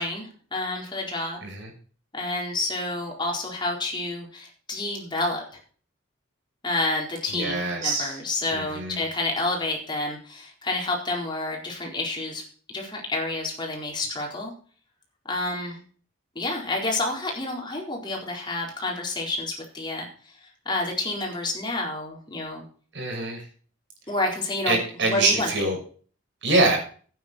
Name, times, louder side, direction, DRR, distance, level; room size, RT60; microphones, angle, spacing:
voice 1, 0.0-1.4 2.1-5.4 6.6-12.4 12.7-14.5 15.3-15.8 16.3-20.1 20.7-22.6 24.1-24.8 25.1-25.5, left 2 dB, 20° left, -1 dB, 4.2 m, -29 dB
voice 2, 7.3-8.2 8.5-9.0 22.9-23.4 24.7-25.8 26.4-26.8, right 2 dB, 60° right, 1 dB, 6.2 m, -24 dB
13.0 x 9.8 x 4.3 m, 0.42 s
head